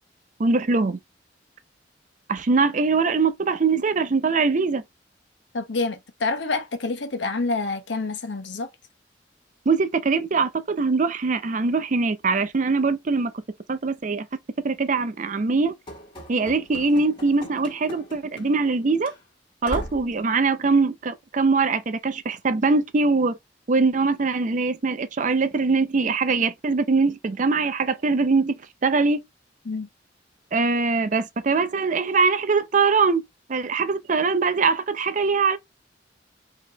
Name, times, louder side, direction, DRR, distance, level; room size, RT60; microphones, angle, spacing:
voice 1, 0.4-1.0 2.3-4.8 9.7-13.3 13.7-14.3 14.6-15.7 16.3-19.1 19.6-23.4 23.7-28.5 28.8-29.2 30.5-33.2 33.5-35.6, right 4 dB, 45° right, 0.5 m, -22 dB
voice 2, 5.5-8.7 29.6-29.9, left 3 dB, 80° left, 0.9 m, -27 dB
Run / Slam, 15.9-18.8 19.0-19.2 19.6-20.1, equal, 25° left, 1.8 m, -38 dB
4.7 x 2.9 x 3.0 m
head